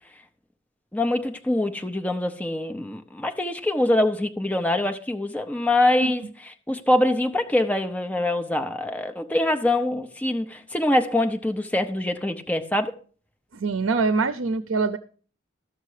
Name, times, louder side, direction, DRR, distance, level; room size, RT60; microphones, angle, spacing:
voice 1, 0.9-6.2 6.7-12.9, left 1 dB, 10° left, 0.7 m, -24 dB
voice 2, 13.5-15.0, right 4 dB, 80° right, 0.6 m, -24 dB
13.5 x 6.6 x 4.9 m
head